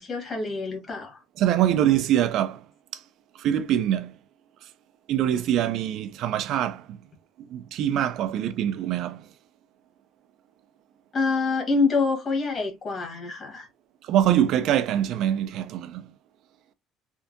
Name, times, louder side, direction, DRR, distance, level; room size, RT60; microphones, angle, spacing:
voice 1, 0.0-1.2 11.1-13.7, left 4 dB, 30° left, 1.3 m, -26 dB
voice 2, 1.4-2.6 2.9-3.0 3.4-4.1 5.1-7.0 7.5-9.3 14.0-16.1, right 11 dB, 55° right, 0.3 m, -24 dB
3.4 x 2.7 x 2.6 m
cardioid pair, 150°, 0 cm